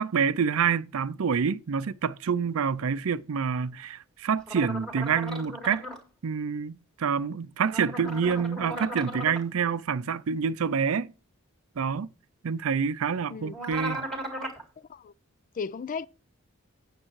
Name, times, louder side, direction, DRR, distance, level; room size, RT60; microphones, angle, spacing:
voice 1, 0.0-5.8 6.2-11.1 11.8-12.1 12.4-14.0, right 6 dB, 75° right, 0.5 m, -27 dB
sound 1, 4.5-6.0 7.6-9.4 13.5-14.6, right 1 dB, ahead, 2.1 m, -36 dB
voice 2, 14.8-15.1 15.5-16.1, left 5 dB, 40° left, 0.3 m, -35 dB
8.8 x 6.7 x 4.6 m
head